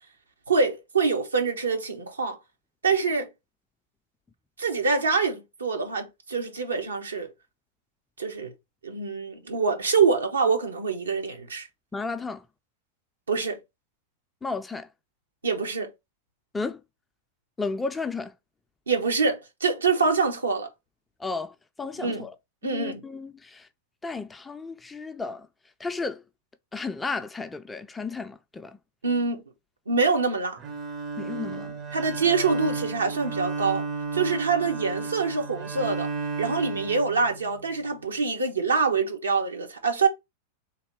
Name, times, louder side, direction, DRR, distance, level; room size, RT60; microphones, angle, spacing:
voice 1, 0.5-2.4 2.8-3.3 4.6-7.3 8.2-8.5 8.8-11.7 13.3-13.6 15.4-15.9 18.9-20.7 22.0-22.3 22.6-23.0 29.0-29.4 29.9-30.6 31.9-33.8 34.1-36.1 36.4-40.1, right 4 dB, 75° right, 1.0 m, -25 dB
voice 2, 11.9-12.4 14.4-14.9 16.5-16.8 17.6-18.3 21.2-22.3 22.6-23.7 24.0-25.5 25.8-26.2 26.7-28.8 31.2-31.7, left 4 dB, 10° left, 0.4 m, -33 dB
Bowed string instrument, 30.6-37.7, right 4 dB, 30° right, 0.7 m, -33 dB
3.5 x 2.8 x 4.6 m
figure-of-eight pair, 90°, 0 cm